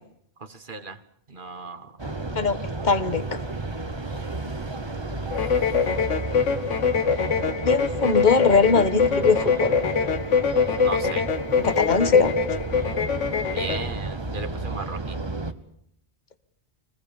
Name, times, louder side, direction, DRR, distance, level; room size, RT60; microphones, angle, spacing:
voice 1, 0.4-1.0 1.3-2.0 10.8-11.3 13.5-15.2, right 3 dB, 45° right, 10 dB, 1.6 m, -36 dB
sound 1, 2.0-15.5, right 2 dB, 25° right, 1.3 m, -33 dB
voice 2, 2.8-3.2 7.6-9.8 11.6-12.3, left 4 dB, 40° left, 11 dB, 1.5 m, -21 dB
sound 2, 5.3-13.9, left 6 dB, 85° left, 1.6 m, -23 dB
25.0 x 20.5 x 7.1 m, 0.71 s
omnidirectional pair, 1.2 m